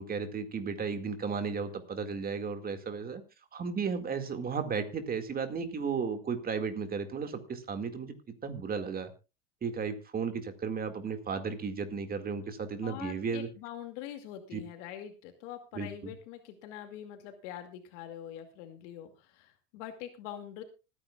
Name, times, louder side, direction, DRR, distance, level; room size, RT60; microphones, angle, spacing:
voice 1, 0.0-3.2 3.5-8.1 8.4-9.1 9.6-13.5 14.5-14.6 15.7-16.1, right 5 dB, 25° right, 8 dB, 2.1 m, -34 dB
voice 2, 12.8-20.6, left 10 dB, 75° left, 6 dB, 2.4 m, -44 dB
25.5 x 9.8 x 2.4 m, 0.29 s
supercardioid pair, 125°, 37 cm